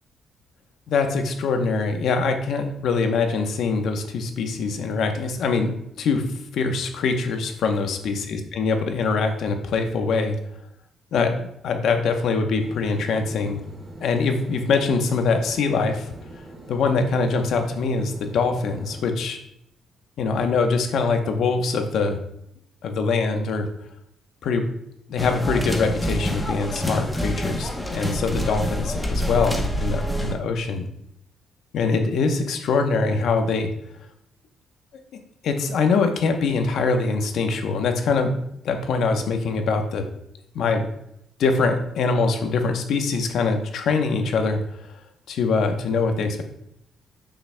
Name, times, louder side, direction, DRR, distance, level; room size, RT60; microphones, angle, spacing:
voice 1, 0.9-6.2 6.5-10.4 11.1-13.6 14.0-16.1 16.7-19.4 20.2-22.2 22.8-23.7 24.4-24.7 25.1-30.9 31.7-33.7 35.4-38.4 38.6-40.0 40.5-40.9 41.4-44.6 45.3-46.4, left 4 dB, 70° left, 5 dB, 0.9 m, -23 dB
sound 1, 12.5-19.0, right 1 dB, 25° right, 2.0 m, -43 dB
sound 2, 25.2-30.3, equal, 10° left, 0.9 m, -27 dB
8.6 x 5.7 x 2.2 m, 0.76 s
cardioid pair, 90°, 0 cm